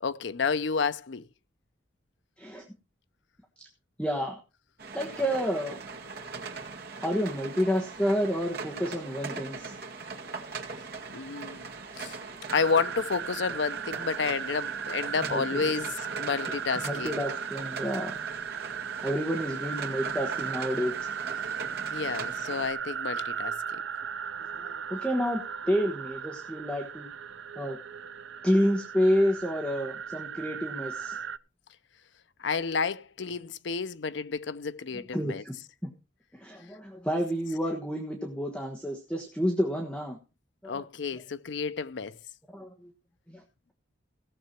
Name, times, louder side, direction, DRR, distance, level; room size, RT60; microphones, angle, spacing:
voice 1, 0.0-1.3 11.1-11.7 12.0-12.2 12.5-17.1 21.9-23.8 32.4-35.4 40.7-42.2, left 5 dB, 70° left, 0.6 m, -30 dB
voice 2, 4.0-4.4 4.9-5.8 7.0-9.7 15.2-15.7 16.8-18.2 19.0-21.1 24.6-27.1 27.5-27.8 28.4-31.2 33.4-33.5 35.1-35.5 35.8-35.9 36.4-40.2 40.6-40.8 42.5-42.9 43.3-43.4, equal, 5° left, 1.3 m, -29 dB
sound 1, 4.8-22.7, right 4 dB, 55° right, 2.0 m, -40 dB
sound 2, 12.5-31.4, right 7 dB, 75° right, 0.5 m, -36 dB
17.0 x 6.8 x 4.4 m
head